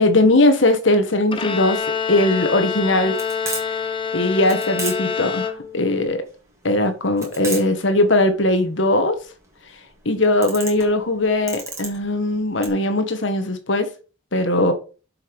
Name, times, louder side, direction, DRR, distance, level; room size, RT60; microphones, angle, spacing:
voice 1, 0.0-3.2 4.1-6.2 6.6-9.1 10.0-13.9 14.3-14.7, left 2 dB, 70° left, 1.6 m, -19 dB
Bowed string instrument, 1.3-6.0, left 6 dB, 25° left, 0.8 m, -26 dB
sound 1, 1.7-12.7, right 3 dB, 15° right, 3.1 m, -35 dB
7.6 x 5.8 x 5.4 m
head